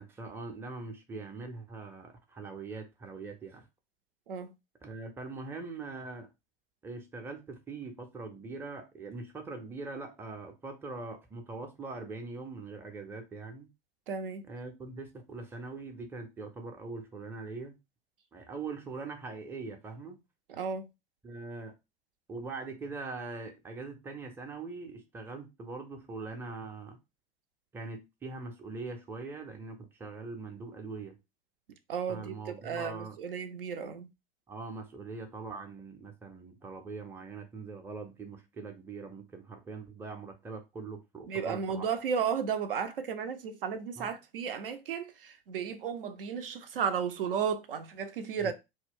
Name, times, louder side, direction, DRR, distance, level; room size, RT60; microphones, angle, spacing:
voice 1, 0.0-3.7 4.8-6.3 6.8-13.7 14.5-17.7 18.3-20.2 21.2-21.7 22.3-27.0 27.7-31.2 32.1-33.2 34.5-41.9 44.0-44.1 48.4-48.5, right 3 dB, 10° right, 0.5 m, -42 dB
voice 2, 14.1-14.5 20.5-20.9 31.9-32.4 32.6-34.1 41.3-48.5, right 7 dB, 70° right, 0.5 m, -34 dB
2.3 x 2.1 x 3.5 m
figure-of-eight pair, 85°, 29 cm